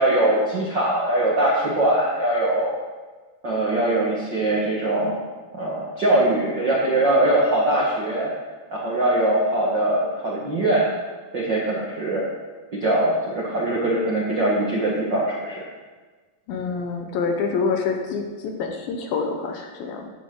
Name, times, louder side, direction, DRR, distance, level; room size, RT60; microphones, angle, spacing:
voice 1, 0.0-2.8 3.4-5.2 5.5-8.3 8.7-10.9 11.3-12.2 12.8-15.6, right 1 dB, 80° right, -5 dB, 1.0 m, -22 dB
voice 2, 16.5-20.1, left 5 dB, 70° left, 3 dB, 2.5 m, -26 dB
13.5 x 10.5 x 3.8 m, 1.4 s
omnidirectional pair, 4.7 m